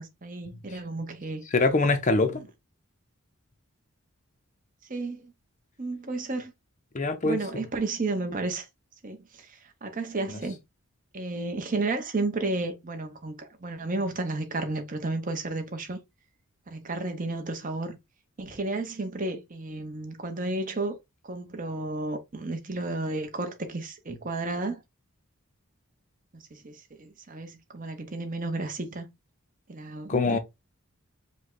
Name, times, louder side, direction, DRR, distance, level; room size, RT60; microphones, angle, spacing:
voice 1, 0.0-1.4 4.9-5.3 5.8-6.5 7.2-8.7 9.0-10.6 11.1-16.0 16.7-18.0 18.4-21.0 21.2-24.8 26.3-29.1 29.7-30.4, right 2 dB, 35° right, 0.8 m, -32 dB
voice 2, 1.5-2.4 6.9-7.6 10.3-10.4 30.1-30.4, left 3 dB, 35° left, 0.5 m, -24 dB
5.1 x 2.2 x 3.7 m
head